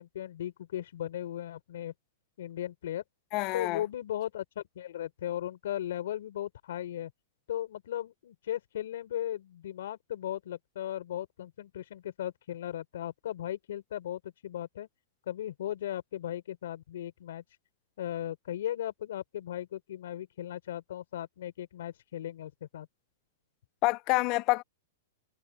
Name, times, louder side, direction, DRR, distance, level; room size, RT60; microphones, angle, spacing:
voice 1, 0.0-1.9 2.4-3.0 3.5-7.1 7.5-14.9 15.3-17.4 18.0-22.9, left 11 dB, 70° left, 4.7 m, -37 dB
voice 2, 3.3-3.8 23.8-24.6, left 23 dB, 35° left, 0.4 m, -27 dB
supercardioid pair, 160°, 0 cm